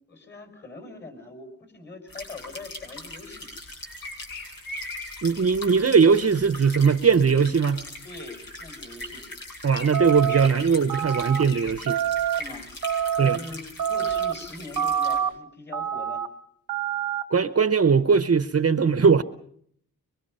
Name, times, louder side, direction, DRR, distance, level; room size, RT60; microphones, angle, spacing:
voice 1, 0.1-3.5 8.0-9.3 10.3-10.4 12.4-12.7 13.2-16.2, left 3 dB, 30° left, 5.9 m, -42 dB
sound 1, 2.1-15.2, left 2 dB, 85° left, 7.0 m, -40 dB
voice 2, 5.2-7.8 9.6-12.0 13.2-13.4 17.3-19.2, right 5 dB, 45° right, 0.8 m, -20 dB
sound 2, 9.9-10.5 10.9-11.4 11.9-12.4 12.8-13.4 13.8-14.3 14.8-15.3 15.7-16.3 16.7-17.2, right 9 dB, 80° right, 0.9 m, -26 dB
24.5 x 23.5 x 5.5 m
wide cardioid pair, 120°, 34 cm